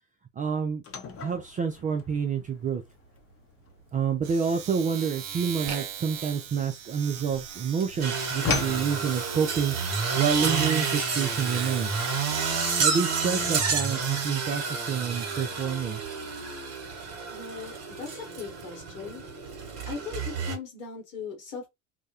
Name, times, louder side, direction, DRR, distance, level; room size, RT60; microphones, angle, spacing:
voice 1, 0.4-0.8 1.2-2.8 3.9-9.8 10.2-12.0 12.8-16.0, right 6 dB, 20° right, 0.3 m, -28 dB
sound 1, 0.8-7.3 7.6-8.9, left 6 dB, 35° left, 0.7 m, -36 dB
Domestic sounds home sounds, 0.9-1.1 1.4-12.7, right 8 dB, 60° right, 0.7 m, -39 dB
sound 2, 8.0-20.6, right 5 dB, 40° right, 1.0 m, -30 dB
voice 2, 17.3-19.2 19.9-21.7, left 5 dB, 75° left, 1.0 m, -39 dB
2.2 x 2.0 x 2.7 m
hypercardioid pair, 70°, 40 cm